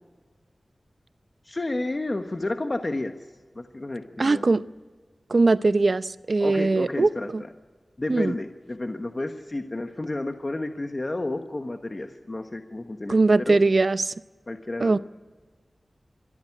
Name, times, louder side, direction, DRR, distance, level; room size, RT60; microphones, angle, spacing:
voice 1, 1.4-3.1 3.5-4.4 6.4-7.5 8.0-13.6 14.5-15.0, left 2 dB, 35° left, 1.2 m, -31 dB
voice 2, 4.2-4.6 5.3-7.4 8.1-8.4 13.1-14.1 14.8-15.0, right 3 dB, 60° right, 0.6 m, -21 dB
26.0 x 13.5 x 9.8 m
wide cardioid pair, 90°, 0 cm